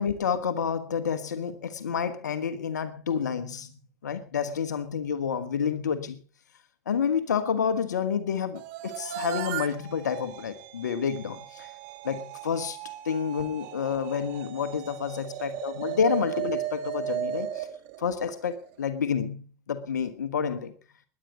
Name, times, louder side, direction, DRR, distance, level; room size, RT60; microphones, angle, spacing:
voice 1, 0.0-3.7 4.0-6.2 6.9-11.7 12.0-12.8 13.0-17.7 18.0-20.7, left 7 dB, 90° left, 1.4 m, -29 dB
sound 1, 8.5-18.7, right 11 dB, 65° right, 1.8 m, -36 dB
19.0 x 11.0 x 5.1 m
hypercardioid pair, 80°, 9 cm